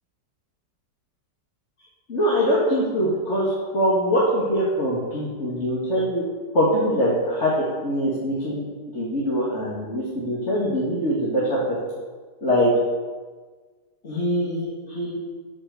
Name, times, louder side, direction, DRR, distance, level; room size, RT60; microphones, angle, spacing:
voice 1, 2.1-6.2 6.5-8.6 8.9-11.8 12.4-12.7 14.0-15.1, equal, 40° left, -6 dB, 2.6 m, -23 dB
14.0 x 6.4 x 6.7 m, 1.4 s
omnidirectional pair, 1.9 m